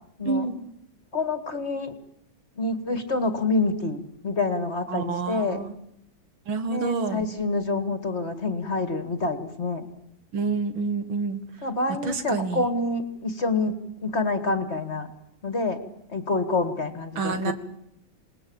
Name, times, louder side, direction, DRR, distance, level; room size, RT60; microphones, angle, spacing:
voice 1, 0.3-0.6 4.9-5.8 6.5-7.3 10.3-11.4 12.0-12.7 17.2-17.5, right 4 dB, 85° right, 9 dB, 2.5 m, -28 dB
voice 2, 1.1-1.9 2.6-5.6 6.7-9.8 11.6-15.1 15.4-15.8 16.1-17.5, left 2 dB, 35° left, 9 dB, 2.2 m, -27 dB
28.0 x 19.5 x 8.8 m, 0.77 s
omnidirectional pair, 2.1 m